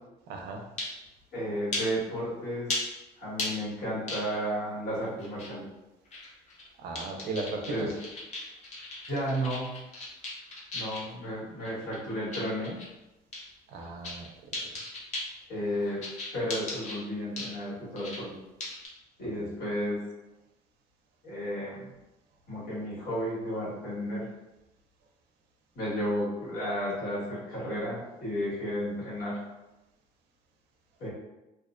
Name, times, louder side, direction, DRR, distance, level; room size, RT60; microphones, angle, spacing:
voice 1, 0.3-0.7 6.8-7.9 13.7-14.7 19.4-19.5, right 3 dB, 75° right, 2 dB, 0.5 m, -37 dB
sound 1, 0.8-1.0 1.7-1.8 2.7-2.8 3.4-3.5 4.1-4.5 5.2-5.5 6.1-6.7 6.9-11.1 11.6-12.9 13.3-13.4 13.8-14.3 14.5-15.3 16.0-17.0 17.4-17.6 18.0-18.2 18.6-18.9, left 2 dB, 45° left, 0.6 m, -36 dB
voice 2, 1.3-2.8 3.2-5.6 7.7-7.9 9.1-9.8 10.7-12.7 15.5-16.0 16.3-18.3 19.2-20.0 21.2-21.9 22.5-24.3 25.7-29.4 31.0-31.1, equal, 65° left, -8 dB, 1.4 m, -33 dB
2.5 x 2.0 x 2.4 m, 0.98 s
cardioid pair, 110°, 17 cm